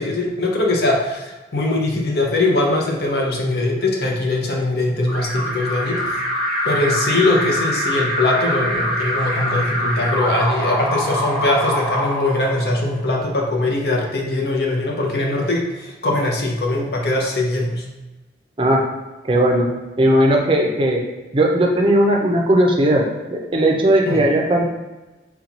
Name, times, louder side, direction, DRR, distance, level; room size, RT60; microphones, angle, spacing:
voice 1, 0.0-6.0 6.6-17.8 24.1-24.2, left 2 dB, 55° left, -1 dB, 0.8 m, -21 dB
Alarm, 5.1-13.0, equal, ahead, 0.9 m, -24 dB
voice 2, 19.2-19.7 20.0-21.0 21.3-24.7, right 1 dB, 25° right, 0 dB, 0.5 m, -17 dB
4.3 x 2.3 x 4.0 m, 1.1 s
head